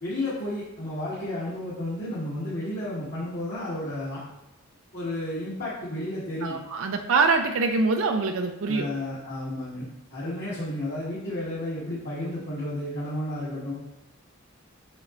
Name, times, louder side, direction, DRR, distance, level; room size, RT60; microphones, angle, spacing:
voice 1, 0.0-4.2 4.9-6.6 8.6-13.7, left 1 dB, 55° left, -10 dB, 1.9 m, -32 dB
voice 2, 6.4-8.9, right 4 dB, 70° right, 4 dB, 0.5 m, -24 dB
7.3 x 5.9 x 2.6 m, 0.91 s
head